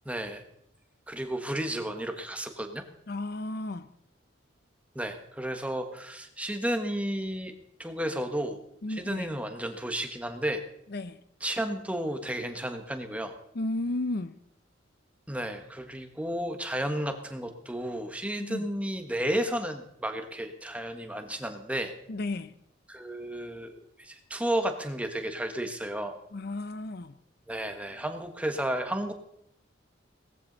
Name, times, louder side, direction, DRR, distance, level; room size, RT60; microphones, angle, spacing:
voice 1, 0.0-0.4 1.1-2.8 4.9-7.5 7.8-8.6 8.9-10.6 11.4-13.3 15.3-21.9 22.9-23.7 24.0-26.1 27.5-29.1, right 1 dB, 5° right, 6 dB, 1.3 m, -32 dB
voice 2, 3.1-3.9 8.8-9.3 10.9-11.2 13.5-14.3 18.4-18.7 22.1-22.5 26.3-27.2, left 2 dB, 50° left, 13 dB, 0.6 m, -33 dB
18.0 x 14.5 x 4.0 m, 0.72 s
head